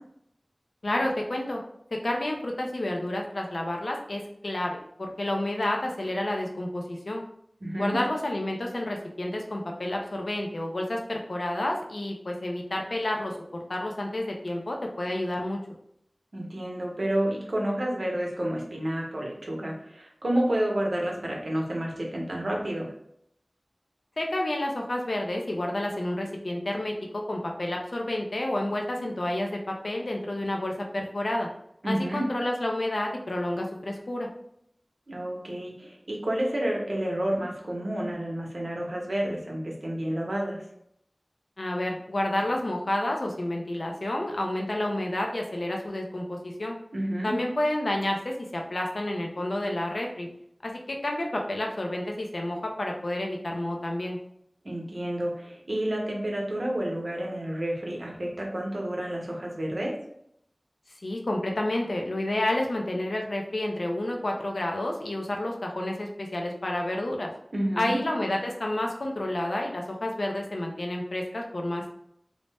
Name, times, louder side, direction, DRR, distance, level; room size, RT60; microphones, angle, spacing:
voice 1, 0.8-1.6 1.9-7.2 7.8-15.6 24.2-31.5 31.8-34.3 41.6-46.8 47.2-50.3 50.6-54.2 61.0-67.3 67.8-71.9, left 1 dB, 90° left, 1 dB, 0.4 m, -30 dB
voice 2, 7.6-8.0 16.3-22.9 31.8-32.3 35.1-40.6 46.9-47.3 54.6-59.9 67.5-68.0, right 1 dB, 85° right, -1 dB, 0.7 m, -30 dB
2.6 x 2.1 x 3.3 m, 0.72 s
wide cardioid pair, 45°, 0 cm